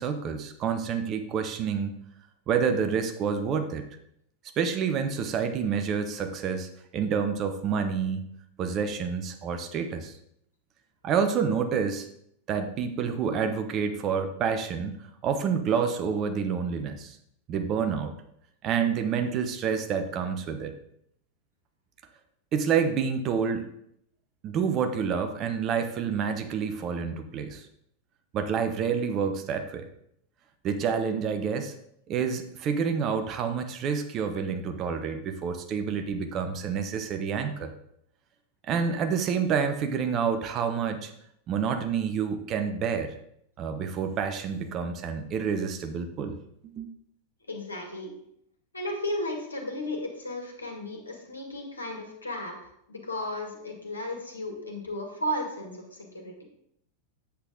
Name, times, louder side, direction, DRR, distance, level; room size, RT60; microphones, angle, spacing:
voice 1, 0.0-1.9 2.5-3.8 4.6-8.3 8.6-10.2 11.0-12.1 12.5-15.0 15.2-17.2 17.5-18.1 18.6-20.8 22.5-23.7 24.4-27.6 28.3-29.9 30.6-31.7 32.1-37.7 38.7-41.1 41.5-43.1 43.6-46.4 46.8-46.9, right 6 dB, 35° right, 7 dB, 1.0 m, -28 dB
voice 2, 47.5-48.1 48.7-56.3, left 1 dB, 80° left, 1 dB, 2.0 m, -34 dB
8.6 x 8.0 x 3.8 m, 0.72 s
figure-of-eight pair, 90°, 0 cm